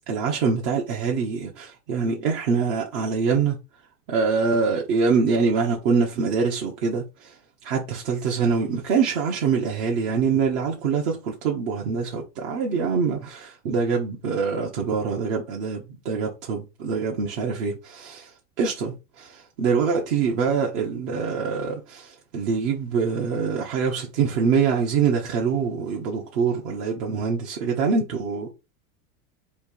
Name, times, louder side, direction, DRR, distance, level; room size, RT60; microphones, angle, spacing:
voice 1, 0.1-3.6 4.1-7.3 7.6-18.3 18.6-28.5, right 5 dB, 65° right, 1.2 m, -24 dB
3.5 x 2.8 x 4.5 m
supercardioid pair, 125°, 43 cm